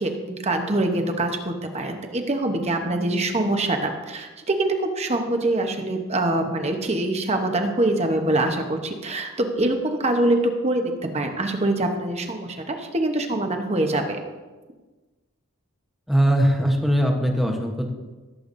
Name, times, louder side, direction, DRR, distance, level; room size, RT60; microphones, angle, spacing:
voice 1, 0.0-14.2, right 2 dB, 30° right, 4 dB, 0.9 m, -24 dB
voice 2, 16.1-17.9, equal, ahead, 2 dB, 1.0 m, -20 dB
16.5 x 7.9 x 2.6 m, 1.2 s
head